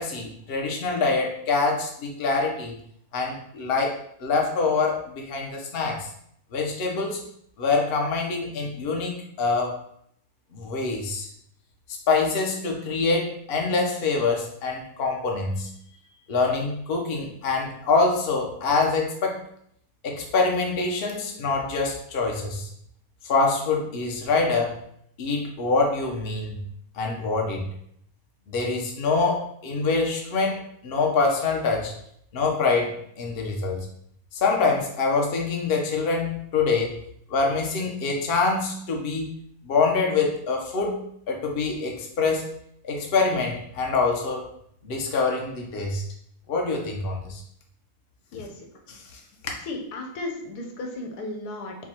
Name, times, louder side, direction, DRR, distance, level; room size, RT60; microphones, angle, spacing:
voice 1, 0.0-2.7 3.1-6.1 6.5-7.2 7.6-9.8 10.5-11.3 12.1-15.7 16.3-19.4 20.0-22.7 23.2-24.8 25.2-26.6 26.9-27.7 28.5-31.9 32.3-33.9 34.3-37.0 37.3-39.3 39.6-41.0 41.3-42.4 42.8-44.5 44.8-46.0 46.5-47.4 48.9-49.2, left 4 dB, 45° left, 0 dB, 0.8 m, -25 dB
voice 2, 48.3-48.7 49.7-51.8, left 2 dB, 85° left, 2 dB, 1.3 m, -34 dB
4.5 x 2.3 x 4.3 m, 0.70 s
omnidirectional pair, 1.6 m